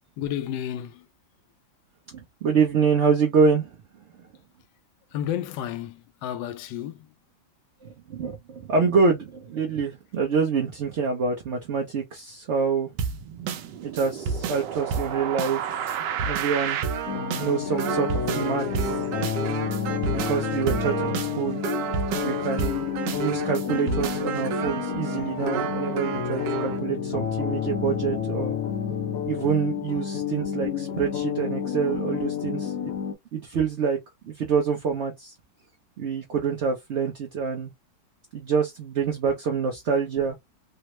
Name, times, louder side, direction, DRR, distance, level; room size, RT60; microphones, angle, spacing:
voice 1, 0.2-1.1 5.1-7.1, left 10 dB, 85° left, 1.2 m, -32 dB
voice 2, 2.1-3.8 7.8-12.9 13.8-15.6 16.2-16.8 17.4-19.0 19.9-21.6 22.2-22.8 23.1-28.6 29.2-32.9 33.3-34.0 34.2-35.3 36.0-37.7 38.3-40.4, right 5 dB, 60° right, 0.7 m, -26 dB
sound 1, 13.0-26.8, right 6 dB, 80° right, 1.3 m, -30 dB
sound 2, 17.1-33.1, left 8 dB, 65° left, 1.0 m, -30 dB
3.4 x 2.1 x 2.9 m
omnidirectional pair, 1.9 m